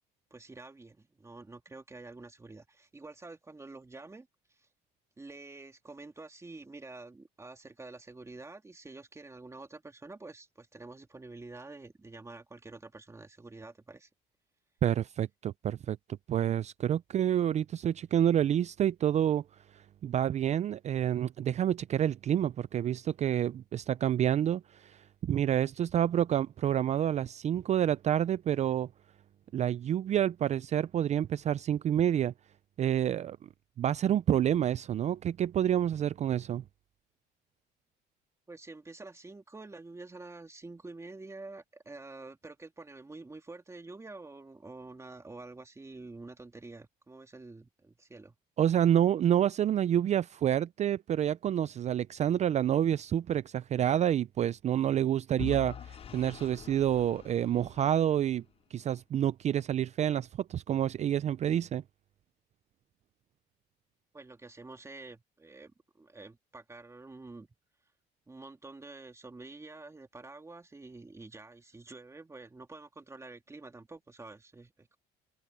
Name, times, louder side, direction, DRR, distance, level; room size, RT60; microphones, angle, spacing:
voice 1, 0.3-4.7 5.2-14.1 38.5-48.4 64.1-67.5 68.3-75.0, right 3 dB, 15° right, 2.2 m, -48 dB
voice 2, 14.8-16.0 16.3-19.4 20.0-28.9 29.5-32.3 32.8-33.4 33.8-36.6 48.6-58.4 58.7-61.8, right 10 dB, 40° right, 0.4 m, -28 dB
Vehicle / Engine, 55.4-58.4, left 8 dB, 35° left, 0.6 m, -43 dB
open air
cardioid pair, 110°, 17 cm